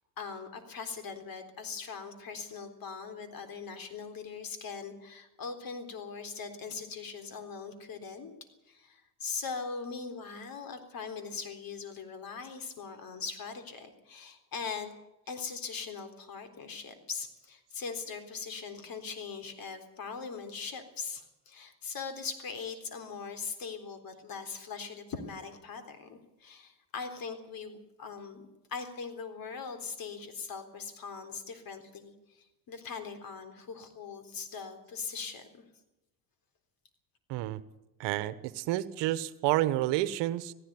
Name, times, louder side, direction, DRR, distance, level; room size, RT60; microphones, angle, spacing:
voice 1, 0.2-8.3 8.7-14.9 15.3-35.6, left 5 dB, 50° left, 7 dB, 3.9 m, -41 dB
voice 2, 38.0-40.5, right 15 dB, 70° right, 15 dB, 1.2 m, -29 dB
17.5 x 16.0 x 9.5 m, 0.94 s
supercardioid pair, 80°, 44 cm